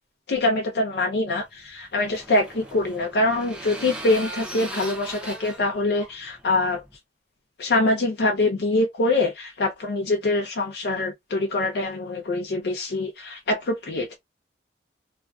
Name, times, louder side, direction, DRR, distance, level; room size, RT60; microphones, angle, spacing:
voice 1, 0.3-6.8 7.6-14.2, left 2 dB, 65° left, 0.5 m, -24 dB
sound 1, 1.4-7.0, right 1 dB, 5° right, 0.6 m, -39 dB
2.4 x 2.2 x 2.3 m
head